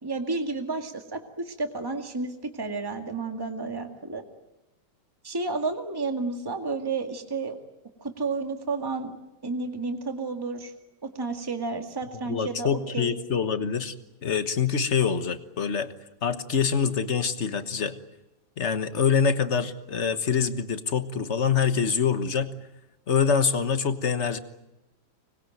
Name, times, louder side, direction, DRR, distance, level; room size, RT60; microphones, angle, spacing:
voice 1, 0.0-4.2 5.2-7.6 8.0-9.2 9.4-10.7 11.0-13.2, right 3 dB, 10° right, 4 dB, 2.0 m, -31 dB
voice 2, 12.3-13.9 14.2-15.9 16.2-18.0 18.6-22.5 23.1-24.4, left 6 dB, 40° left, 10 dB, 1.4 m, -25 dB
25.5 x 20.5 x 9.3 m, 0.96 s
omnidirectional pair, 2.1 m